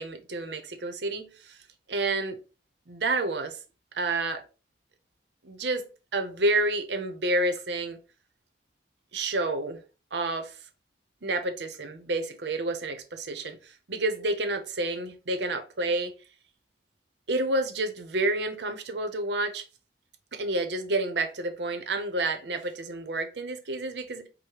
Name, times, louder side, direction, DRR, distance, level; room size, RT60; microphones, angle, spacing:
voice 1, 0.0-1.6 1.9-2.4 2.9-3.6 3.9-4.4 5.4-8.0 9.1-9.8 10.1-10.6 11.2-16.1 17.3-19.6 20.3-24.3, right 2 dB, 75° right, 0.8 m, -29 dB
4.9 x 2.2 x 4.6 m
head